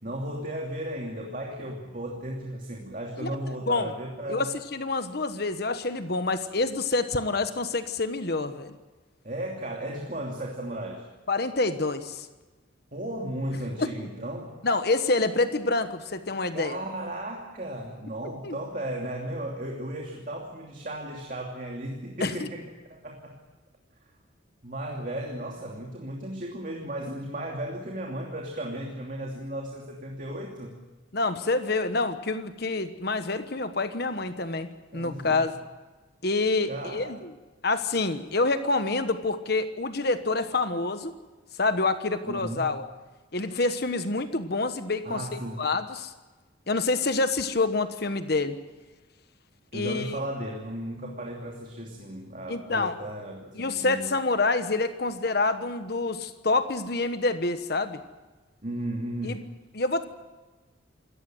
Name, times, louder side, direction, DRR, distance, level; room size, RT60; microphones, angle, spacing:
voice 1, 0.0-4.5 9.2-11.1 12.9-14.5 16.5-22.6 22.9-23.4 24.6-30.8 34.9-35.5 36.7-37.1 42.3-42.7 43.5-43.6 45.0-45.6 49.7-54.1 58.6-59.4, right 1 dB, 40° right, 0 dB, 2.8 m, -35 dB
voice 2, 4.3-8.7 11.3-12.3 13.8-13.9 14.6-16.8 18.4-18.6 22.2-22.3 31.1-35.5 36.2-37.2 37.6-41.1 41.6-42.8 43.3-46.1 46.7-48.6 49.7-50.2 52.5-52.9 53.5-58.0 59.2-59.4 59.7-60.0, left 3 dB, 50° left, 10 dB, 1.2 m, -27 dB
26.0 x 14.5 x 9.2 m, 1.3 s
head